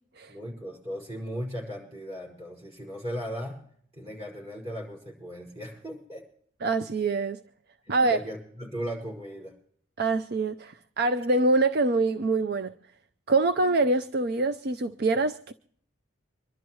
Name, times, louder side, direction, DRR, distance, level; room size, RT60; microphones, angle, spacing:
voice 1, 0.3-3.6 3.9-6.3 7.8-9.5, equal, 30° right, 5.3 m, -37 dB
voice 2, 6.6-7.4 7.9-8.2 10.0-12.7 13.3-15.5, right 3 dB, 50° right, 0.5 m, -25 dB
25.5 x 12.0 x 3.1 m
head